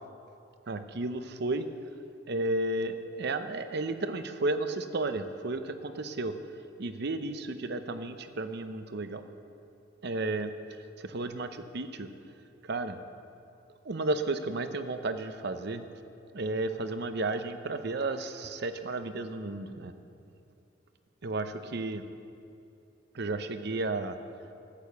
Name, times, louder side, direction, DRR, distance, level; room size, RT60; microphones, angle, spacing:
voice 1, 0.7-1.7 2.3-6.3 6.8-9.2 10.0-12.1 12.6-13.0 13.8-15.9 16.3-19.9 21.2-22.0 23.1-24.2, right 2 dB, 60° right, 9 dB, 0.7 m, -33 dB
13.0 x 8.5 x 6.9 m, 2.6 s
head